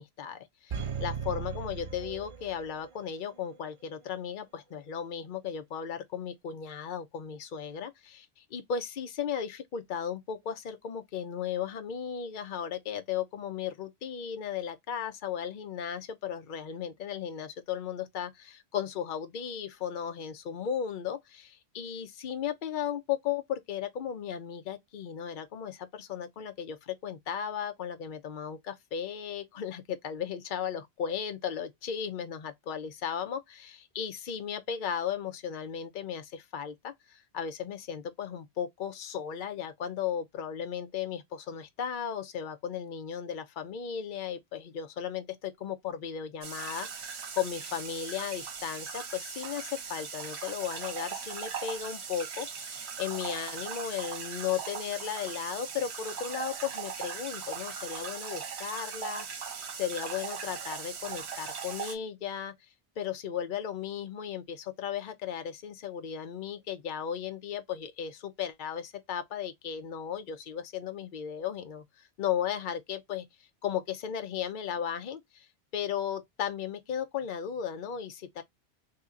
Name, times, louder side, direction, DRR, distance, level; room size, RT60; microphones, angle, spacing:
voice 1, 0.0-62.5 63.0-71.8 72.2-73.3 73.6-75.5 75.7-78.4, left 8 dB, 55° left, 0.7 m, -36 dB
sound 1, 0.7-2.9 3.2-3.3, right 6 dB, 45° right, 0.4 m, -37 dB
sound 2, 46.4-61.9, right 6 dB, 80° right, 1.1 m, -39 dB
2.9 x 2.8 x 3.6 m
omnidirectional pair, 1.1 m